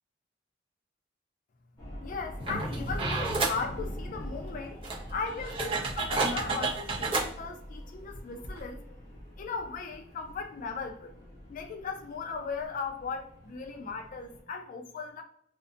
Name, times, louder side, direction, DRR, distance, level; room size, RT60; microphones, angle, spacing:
sound 1, 1.8-14.4, equal, 20° left, 0.9 m, -44 dB
voice 1, 2.0-8.8 9.4-11.1 11.5-15.2, left 4 dB, 45° left, 0.3 m, -37 dB
sound 2, 2.4-3.6 4.4-4.5 4.8-7.3 8.1-8.2 8.4-8.6, right 3 dB, 30° right, 0.5 m, -31 dB
2.5 x 2.1 x 2.5 m
head